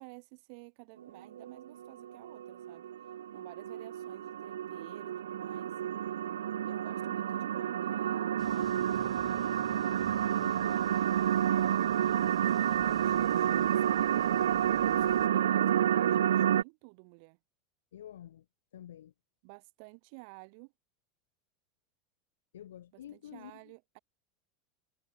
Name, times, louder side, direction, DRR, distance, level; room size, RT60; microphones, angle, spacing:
voice 1, 0.0-5.8 6.6-9.1 10.6-11.7 12.2-14.2 14.8-17.4 19.4-20.7 22.9-24.0, right 36 dB, 60° right, 6.6 m, -53 dB
sound 1, 1.3-16.6, right 10 dB, 80° right, 0.5 m, -29 dB
sound 2, 8.4-15.3, right 5 dB, 20° right, 3.3 m, -54 dB
voice 2, 10.4-10.8 15.1-15.2 17.9-18.4 18.7-19.1 22.5-23.7, left 11 dB, 80° left, 4.7 m, -49 dB
hypercardioid pair, 85°, 0 cm